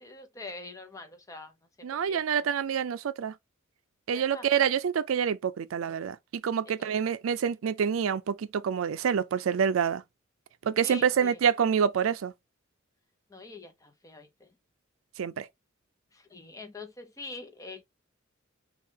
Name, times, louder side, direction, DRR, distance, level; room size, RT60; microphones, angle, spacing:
voice 1, 0.0-2.5 4.1-4.5 6.8-6.9 10.8-11.4 13.3-14.5 16.1-17.8, left 3 dB, 15° left, 0.7 m, -45 dB
voice 2, 1.8-3.3 4.1-10.0 10.6-12.3 15.2-15.5, right 7 dB, 90° right, 0.4 m, -27 dB
5.4 x 2.4 x 2.8 m
head